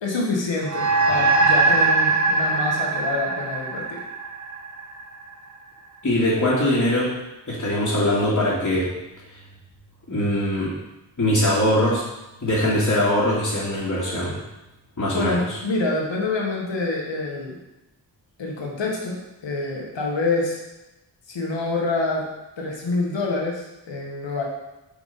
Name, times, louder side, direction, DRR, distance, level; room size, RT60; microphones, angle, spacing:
voice 1, 0.0-4.0 15.1-17.6 18.4-20.6 21.3-22.2 22.6-24.4, left 3 dB, 75° left, -2 dB, 1.5 m, -26 dB
sound 1, 0.7-5.3, right 3 dB, 40° right, 0.7 m, -21 dB
voice 2, 6.0-7.1 7.5-8.9 10.1-10.7 11.2-12.0 12.4-14.4 15.0-15.6, left 1 dB, 40° left, -9 dB, 2.0 m, -21 dB
5.3 x 4.6 x 4.0 m, 0.97 s
cardioid pair, 45°, 44 cm